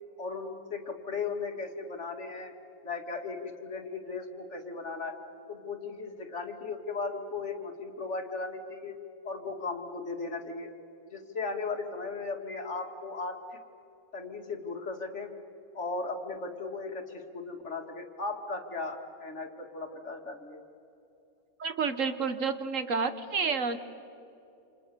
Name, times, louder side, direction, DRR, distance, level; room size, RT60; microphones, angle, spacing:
voice 1, 0.2-2.5 2.8-5.2 5.5-9.0 9.2-10.7 11.1-13.6 14.1-15.3 15.7-20.6, left 4 dB, 50° left, 4 dB, 2.4 m, -37 dB
voice 2, 21.6-23.8, right 5 dB, 60° right, 10 dB, 1.5 m, -30 dB
29.0 x 27.5 x 6.9 m, 2.9 s
omnidirectional pair, 1.5 m